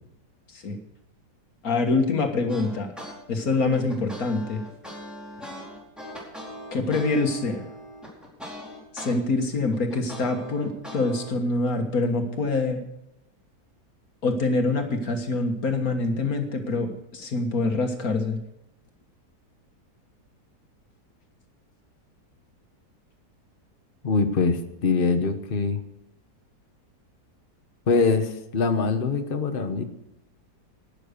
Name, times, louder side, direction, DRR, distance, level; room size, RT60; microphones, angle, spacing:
voice 1, 1.6-2.9 3.3-4.6 6.7-7.6 8.9-12.8 14.2-18.4, left 3 dB, 60° left, 4 dB, 2.0 m, -25 dB
sound 1, 2.5-3.1 3.5-9.1 9.5-11.3, equal, ahead, 4.5 m, -40 dB
voice 2, 24.0-25.8 27.9-29.8, left 4 dB, 35° left, 6 dB, 1.2 m, -23 dB
12.0 x 10.5 x 6.6 m, 0.82 s
omnidirectional pair, 1.8 m